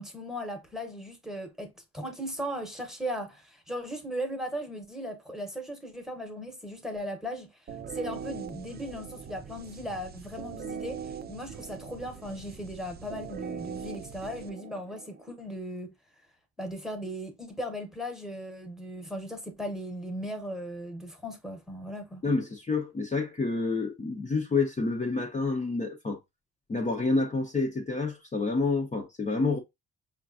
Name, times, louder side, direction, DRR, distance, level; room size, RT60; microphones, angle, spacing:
voice 1, 0.0-7.5 7.9-11.0 11.3-15.9 16.6-22.2, equal, ahead, 1.0 m, -37 dB
sound 1, 7.7-15.3, right 7 dB, 35° right, 0.4 m, -41 dB
voice 2, 22.2-26.2 26.7-29.6, left 3 dB, 25° left, 0.7 m, -28 dB
5.1 x 2.4 x 2.6 m
cardioid pair, 90°, 30 cm